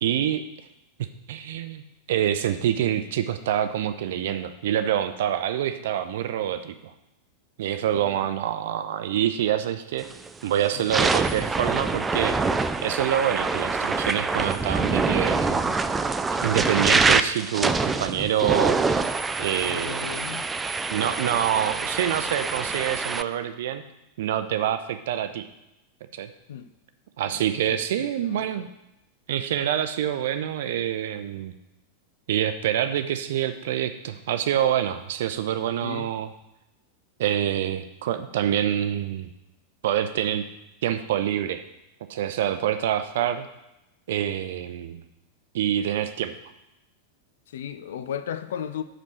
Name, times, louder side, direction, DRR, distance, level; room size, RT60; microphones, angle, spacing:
voice 1, 0.0-0.4 1.0-1.8 2.1-6.9 7.6-10.1 10.4-12.4 12.8-15.7 16.3-19.0 19.4-20.1 20.9-23.8 24.2-25.5 26.1-26.3 27.2-28.6 29.3-31.5 32.3-36.3 37.2-39.3 39.8-40.4 40.8-41.6 42.1-43.5 44.1-45.0 45.5-46.3, right 10 dB, 55° right, 10 dB, 0.6 m, -26 dB
voice 2, 7.9-8.3 10.7-10.9 19.7-20.5 26.5-26.7 27.3-27.4 27.7-28.7 35.8-36.1 47.5-48.8, left 9 dB, 60° left, 12 dB, 0.5 m, -36 dB
sound 1, 10.0-10.3 10.8-23.2, right 4 dB, 15° right, 0.4 m, -25 dB
6.2 x 5.3 x 6.3 m, 0.91 s
figure-of-eight pair, 90°, 0 cm